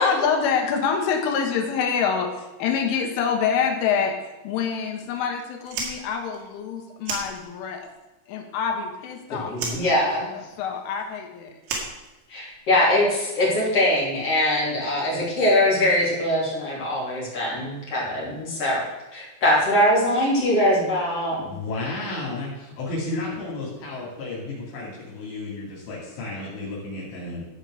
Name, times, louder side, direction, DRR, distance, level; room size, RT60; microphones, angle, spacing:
voice 1, 0.0-4.2 4.4-7.9 8.3-9.8 10.2-11.6, left 6 dB, 80° left, 2 dB, 3.9 m, -26 dB
Fire, 5.6-7.9 8.2-9.2 9.5-12.7, right 4 dB, 85° right, 4.5 m, -34 dB
voice 2, 9.3-10.3 12.3-18.8 19.1-21.5, left 1 dB, 35° left, -6 dB, 3.6 m, -22 dB
voice 3, 21.4-27.4, left 2 dB, 60° left, -4 dB, 5.0 m, -32 dB
14.0 x 5.3 x 6.4 m, 1.1 s
omnidirectional pair, 5.7 m